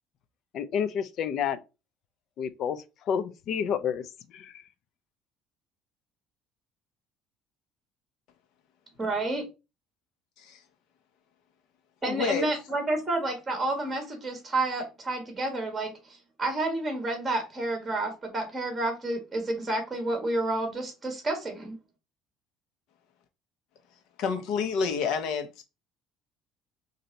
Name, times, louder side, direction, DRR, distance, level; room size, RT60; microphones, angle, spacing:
voice 1, 0.5-1.6 2.4-4.6, left 7 dB, 55° left, 0.5 m, -30 dB
voice 2, 9.0-9.4 12.0-21.8, right 2 dB, 15° right, 1.7 m, -30 dB
voice 3, 12.1-12.5 24.2-25.5, left 5 dB, 70° left, 1.0 m, -28 dB
4.4 x 2.7 x 4.0 m
cardioid pair, 120°, 0 cm